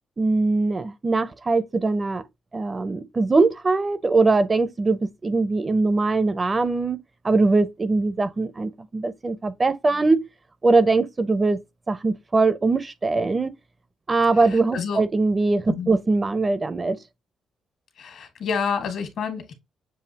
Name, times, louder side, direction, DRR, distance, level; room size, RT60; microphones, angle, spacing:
voice 1, 0.2-2.2 2.5-7.0 7.2-10.2 10.6-11.6 11.9-13.5 14.1-17.0, right 3 dB, 25° right, 0.6 m, -21 dB
voice 2, 14.3-15.0 15.7-15.9 18.0-19.5, left 6 dB, 70° left, 1.6 m, -29 dB
7.0 x 2.7 x 2.8 m
cardioid pair, 90°, 0 cm